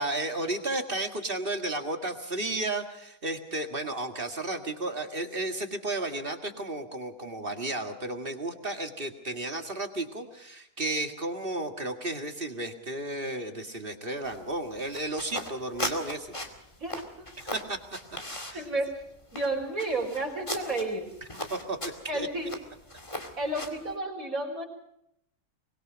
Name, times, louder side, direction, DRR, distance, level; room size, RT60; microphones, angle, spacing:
voice 1, 0.0-16.3 17.4-17.8 18.5-18.7 21.3-22.3, right 2 dB, 35° right, 6 dB, 2.0 m, -33 dB
sound 1, 14.2-23.9, left 1 dB, 20° left, 2.4 m, -39 dB
voice 2, 16.8-17.3 18.5-19.0 19.3-21.1 22.1-22.5 23.4-24.6, right 2 dB, 55° right, 2 dB, 5.1 m, -31 dB
24.0 x 21.5 x 5.2 m, 0.78 s
omnidirectional pair, 1.7 m